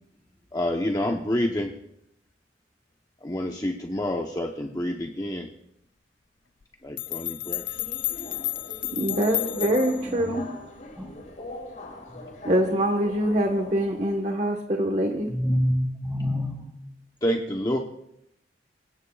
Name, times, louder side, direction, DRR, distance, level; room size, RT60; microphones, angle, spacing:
voice 1, 0.5-1.7 3.2-5.5 6.8-7.8 11.4-11.5 17.2-17.8, left 1 dB, 20° left, 2 dB, 1.0 m, -28 dB
sound 1, 6.6-6.7 7.0-10.1, left 18 dB, 90° left, 0.5 m, -31 dB
Subway metro underground, 7.4-14.2, left 2 dB, 45° left, 4.8 m, -41 dB
voice 2, 8.9-10.5 12.4-15.3, right 1 dB, 40° right, 2 dB, 1.4 m, -24 dB
voice 3, 10.0-10.4 10.9-11.1 12.1-12.2 15.3-16.7, equal, 5° right, -2 dB, 6.3 m, -27 dB
28.0 x 17.0 x 2.4 m, 0.77 s
head